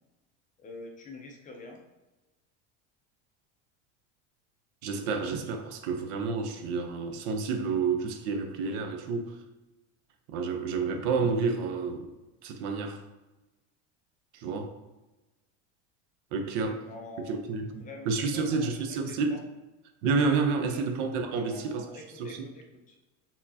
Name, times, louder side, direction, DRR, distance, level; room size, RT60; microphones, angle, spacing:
voice 1, 0.6-1.8 16.8-17.4 17.8-19.4 20.6-20.9 21.3-23.0, left 2 dB, 20° left, 0.6 m, -46 dB
voice 2, 4.8-9.4 10.3-12.1 12.4-13.0 14.3-14.7 16.3-16.9 17.2-19.4 20.0-21.9 22.2-22.4, right 4 dB, 65° right, 0.8 m, -30 dB
4.3 x 3.7 x 2.8 m
supercardioid pair, 150°, 36 cm